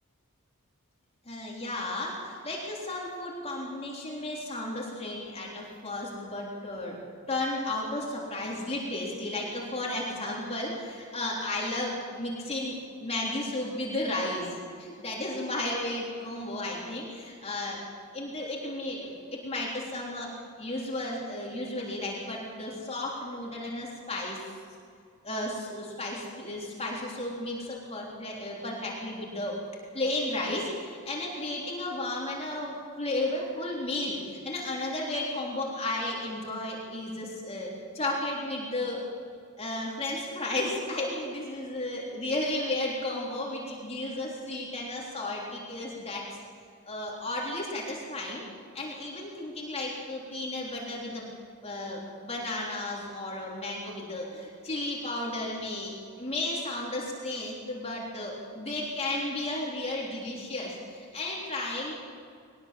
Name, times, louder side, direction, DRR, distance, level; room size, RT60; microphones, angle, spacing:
voice 1, 1.3-7.0 7.3-17.8 18.1-24.4 25.2-29.6 29.9-39.0 39.6-46.3 46.9-48.4 48.7-51.3 51.6-61.9, left 1 dB, 30° left, -3 dB, 3.6 m, -33 dB
21.5 x 20.0 x 7.7 m, 2.3 s
head